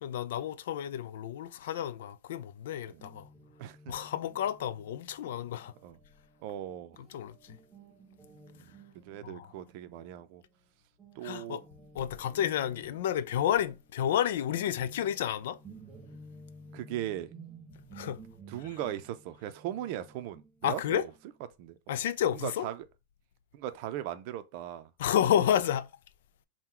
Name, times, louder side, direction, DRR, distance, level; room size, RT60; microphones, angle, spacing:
voice 1, 0.0-3.3 3.9-5.7 7.1-7.6 9.2-9.5 11.2-11.6 11.9-15.6 17.9-18.2 20.6-21.0 21.9-22.7 25.0-25.9, left 10 dB, 75° left, 0.4 m, -30 dB
Guitar, 3.0-10.7 11.0-21.4, right 2 dB, 20° right, 0.9 m, -54 dB
voice 2, 3.6-3.9 5.8-6.0 6.4-7.0 8.5-10.4 11.2-11.6 16.7-17.3 18.5-21.1 21.6-21.8 22.3-22.9 23.5-24.9, right 12 dB, 50° right, 0.5 m, -38 dB
3.8 x 2.2 x 4.3 m
supercardioid pair, 140°, 0 cm